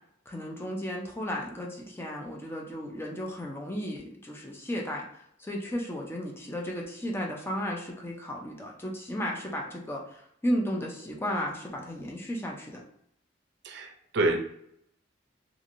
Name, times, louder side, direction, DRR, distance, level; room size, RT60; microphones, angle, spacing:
voice 1, 0.3-5.0 5.4-12.8, equal, 10° left, -1 dB, 0.5 m, -34 dB
voice 2, 13.6-14.4, right 2 dB, 60° right, 3 dB, 0.5 m, -27 dB
3.1 x 2.5 x 2.5 m, 0.72 s
head